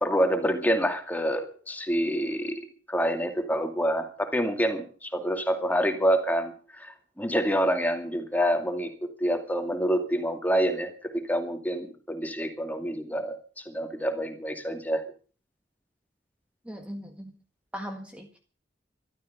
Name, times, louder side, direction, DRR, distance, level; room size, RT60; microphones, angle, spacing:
voice 1, 0.0-15.0, equal, 10° left, 6 dB, 2.4 m, -27 dB
voice 2, 16.7-17.3 17.7-18.4, equal, 5° right, 4 dB, 1.7 m, -39 dB
14.0 x 13.0 x 6.8 m, 0.40 s
head